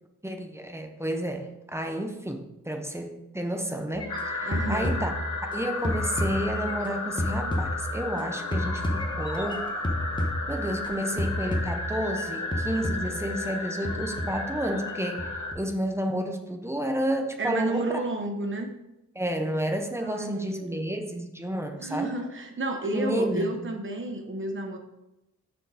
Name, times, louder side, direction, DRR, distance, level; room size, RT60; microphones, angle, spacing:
voice 1, 0.2-5.1 5.5-9.7 10.5-18.0 19.1-22.1 22.9-23.6, right 1 dB, 10° right, 5 dB, 0.6 m, -31 dB
sound 1, 3.9-5.5 5.8-8.2 8.5-10.9 11.2-12.2 12.5-13.3 13.8-14.9 15.2-15.7, left 1 dB, 15° left, 1.0 m, -31 dB
sound 2, 4.1-15.5, left 3 dB, 65° left, 1.2 m, -34 dB
voice 2, 4.4-5.0 17.4-18.7 20.0-20.8 21.8-24.8, right 2 dB, 35° right, 3 dB, 1.0 m, -31 dB
6.7 x 4.5 x 4.9 m, 0.91 s
wide cardioid pair, 155°, 32 cm